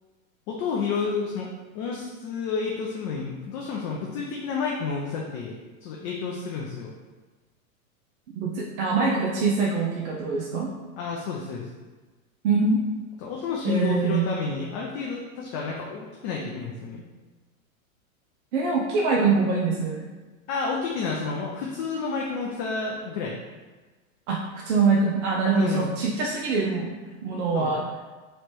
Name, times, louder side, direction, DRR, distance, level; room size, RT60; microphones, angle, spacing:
voice 1, 0.5-1.5 1.7-6.9 11.0-11.7 13.2-17.0 20.5-23.4 25.5-25.9 27.5-27.7, left 5 dB, 35° left, -2 dB, 0.5 m, -30 dB
voice 2, 8.4-10.7 12.4-12.8 13.6-14.3 18.5-20.1 24.3-27.8, right 4 dB, 55° right, -3 dB, 0.7 m, -24 dB
3.2 x 3.1 x 4.4 m, 1.3 s
hypercardioid pair, 125°, 42 cm